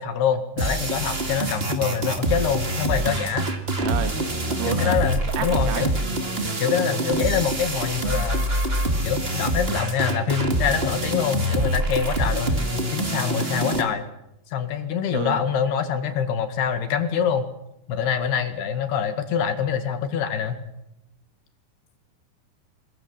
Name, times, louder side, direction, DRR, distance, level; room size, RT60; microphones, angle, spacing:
voice 1, 0.0-3.5 4.7-5.9 6.6-8.5 9.0-14.1 14.5-17.5 17.9-20.6, left 7 dB, 80° left, 9 dB, 4.0 m, -25 dB
sound 1, 0.6-13.8, right 1 dB, 20° right, 1.6 m, -25 dB
voice 2, 3.8-4.2 4.5-5.0 5.4-5.9 15.1-15.4, right 7 dB, 75° right, 9 dB, 3.7 m, -29 dB
24.5 x 21.5 x 7.3 m, 0.85 s
omnidirectional pair, 4.6 m